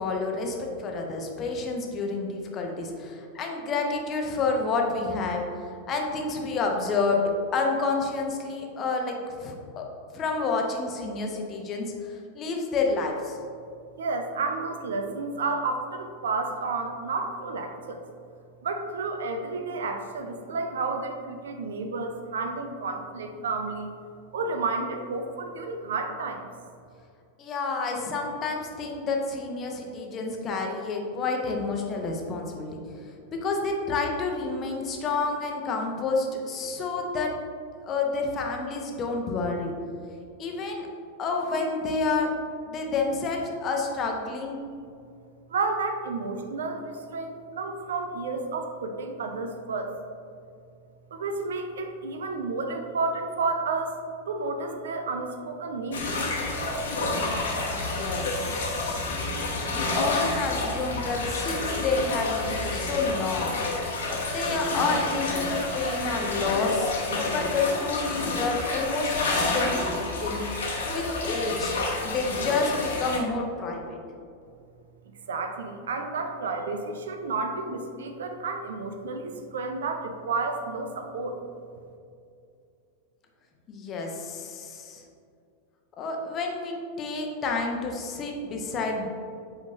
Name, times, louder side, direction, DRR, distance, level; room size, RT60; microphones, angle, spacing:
voice 1, 0.0-5.4 5.9-9.8 10.1-13.4 27.4-33.1 33.4-37.3 37.8-39.7 40.4-40.9 41.2-42.3 42.7-44.6 57.7-59.1 59.7-63.5 63.9-70.4 70.9-71.8 72.0-74.0 83.7-85.0 86.0-89.1, left 3 dB, 30° left, 1 dB, 0.9 m, -29 dB
voice 2, 14.0-18.0 18.6-23.9 24.3-26.5 45.5-50.0 51.1-54.0 54.3-56.1 56.5-56.6 75.3-81.4, right 3 dB, 65° right, 5 dB, 0.6 m, -31 dB
sound 1, 55.9-73.2, left 2 dB, 65° left, 1.1 m, -29 dB
8.1 x 5.1 x 2.6 m, 2.4 s
figure-of-eight pair, 90°, 0 cm